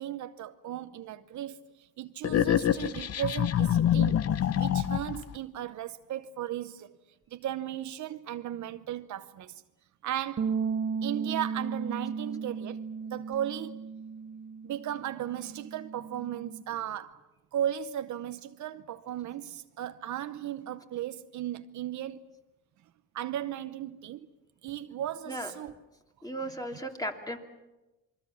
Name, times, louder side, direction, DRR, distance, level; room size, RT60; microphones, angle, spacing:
voice 1, 0.0-7.0 7.3-9.6 10.0-10.6 11.0-13.9 14.6-17.2 17.5-22.2 23.1-24.3 24.6-25.7, right 11 dB, 75° right, 0.9 m, -36 dB
sound 1, 2.2-5.3, left 10 dB, 55° left, 0.9 m, -26 dB
sound 2, 10.4-16.6, right 5 dB, 45° right, 1.3 m, -35 dB
voice 2, 26.2-27.4, right 1 dB, 10° left, 2.7 m, -35 dB
28.0 x 22.0 x 7.1 m
cardioid pair, 90°, 30 cm